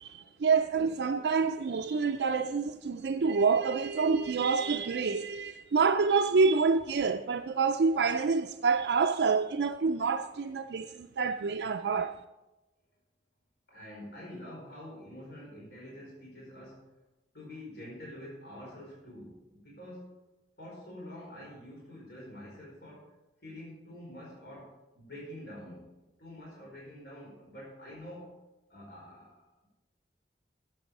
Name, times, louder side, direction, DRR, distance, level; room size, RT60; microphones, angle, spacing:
voice 1, 0.0-12.1, right 5 dB, 75° right, 0.4 m, -27 dB
voice 2, 13.7-16.9 17.3-20.1 20.6-23.1 23.4-28.4 28.7-29.7, left 1 dB, 60° left, 4.7 m, -47 dB
12.5 x 7.9 x 5.3 m
head